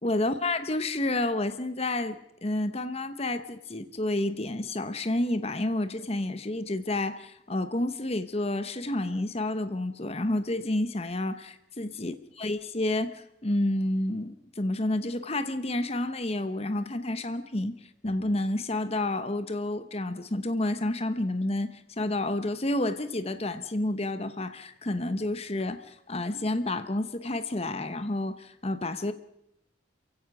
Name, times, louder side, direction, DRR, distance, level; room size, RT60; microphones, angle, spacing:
voice 1, 0.0-29.1, left 1 dB, 35° left, 11 dB, 1.1 m, -30 dB
28.5 x 16.0 x 6.2 m, 0.83 s
head